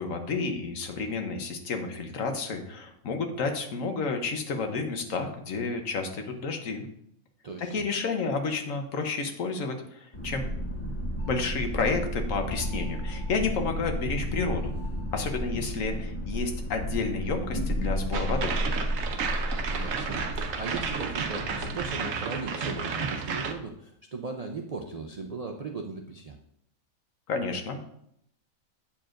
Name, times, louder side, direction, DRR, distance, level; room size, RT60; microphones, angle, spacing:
voice 1, 0.0-6.8 7.6-10.5 11.3-14.7 15.1-18.5 27.3-27.8, left 4 dB, 65° left, 5 dB, 1.3 m, -31 dB
sound 1, 10.1-21.9, equal, 25° left, 0.8 m, -32 dB
sound 2, 18.1-23.5, right 5 dB, 65° right, 1.1 m, -32 dB
voice 2, 19.7-26.4, right 4 dB, 90° right, 3 dB, 0.3 m, -37 dB
8.6 x 7.0 x 2.5 m, 0.73 s
omnidirectional pair, 1.5 m